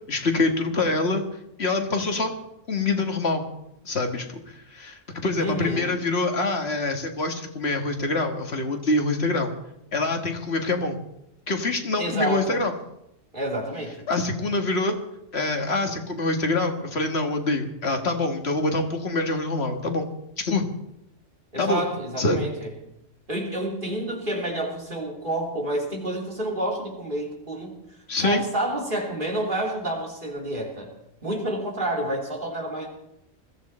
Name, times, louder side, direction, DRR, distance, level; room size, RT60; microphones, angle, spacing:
voice 1, 0.1-1.2 1.6-2.3 2.7-3.5 3.9-9.5 9.9-11.0 11.5-12.7 14.1-15.0 15.3-20.1 20.4-20.7 21.6-21.8 22.2-22.5 28.1-28.4, left 2 dB, 50° left, 4 dB, 1.9 m, -25 dB
voice 2, 5.4-5.9 12.0-12.6 13.3-14.1 21.5-22.7 23.3-27.8 28.2-30.9 31.2-32.9, right 1 dB, 40° right, -1 dB, 3.4 m, -29 dB
21.5 x 14.5 x 4.3 m, 0.81 s
omnidirectional pair, 1.4 m